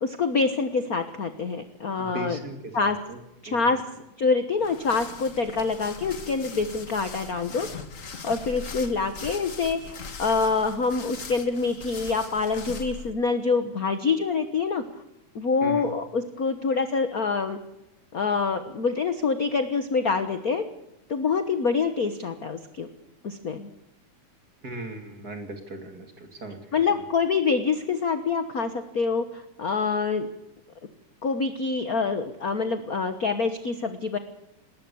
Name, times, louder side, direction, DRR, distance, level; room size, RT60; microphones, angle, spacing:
voice 1, 0.0-2.4 2.7-3.0 3.4-3.8 4.2-7.7 8.2-14.8 15.3-17.6 18.1-20.6 21.1-22.9 23.2-23.7 26.7-30.3 31.2-34.2, left 4 dB, 55° left, 9 dB, 0.9 m, -26 dB
voice 2, 2.0-3.2 3.5-3.7 15.6-15.8 24.6-26.8, right 2 dB, 30° right, 5 dB, 2.8 m, -38 dB
sound 1, 4.6-13.1, left 5 dB, 35° left, 1.4 m, -40 dB
19.5 x 19.0 x 7.0 m, 0.90 s
omnidirectional pair, 3.4 m